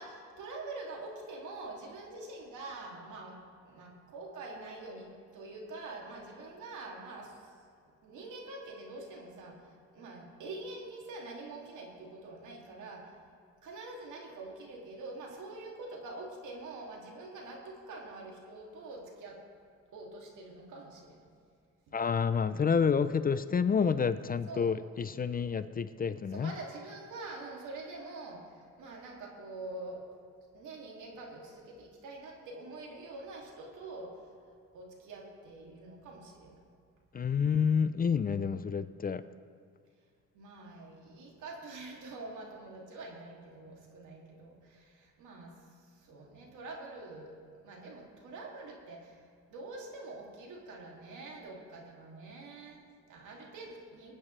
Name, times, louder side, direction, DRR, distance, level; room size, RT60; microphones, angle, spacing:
voice 1, 0.0-3.4 3.6-7.5 8.0-13.1 13.6-19.4 19.9-21.3 21.9-22.0 24.5-24.7 26.3-30.1 30.5-34.3 34.7-36.6 40.3-45.5 45.9-47.4 47.6-49.2 49.5-54.1, right 2 dB, 80° right, -1 dB, 2.6 m, -45 dB
voice 2, 21.9-26.5 37.1-39.2, left 6 dB, 30° left, 13 dB, 0.4 m, -29 dB
21.0 x 9.0 x 3.3 m, 2.3 s
cardioid pair, 90°, 30 cm